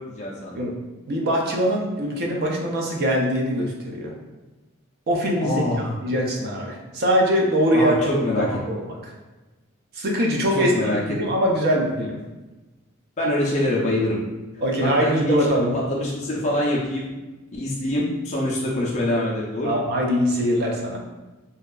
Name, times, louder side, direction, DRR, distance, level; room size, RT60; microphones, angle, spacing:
voice 1, 0.1-0.6 5.4-5.9 7.7-8.5 10.6-11.2 13.2-14.2 14.8-17.0 17.5-19.8, left 1 dB, 35° left, -4 dB, 0.4 m, -25 dB
voice 2, 1.1-4.1 5.1-5.6 6.0-9.0 9.9-10.7 11.2-12.2 14.6-15.7 19.6-21.0, equal, 50° right, -1 dB, 0.5 m, -22 dB
2.7 x 2.3 x 2.3 m, 1.1 s
head